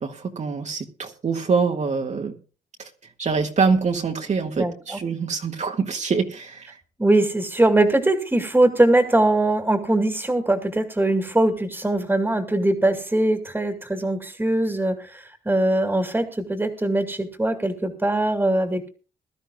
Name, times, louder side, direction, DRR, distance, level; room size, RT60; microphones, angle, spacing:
voice 1, 0.0-2.3 2.8-2.9 3.2-6.8, right 5 dB, 50° right, 1.8 m, -25 dB
voice 2, 4.6-5.0 7.0-18.9, right 1 dB, 10° right, 2.2 m, -21 dB
21.5 x 12.5 x 2.3 m
cardioid pair, 110°, 16 cm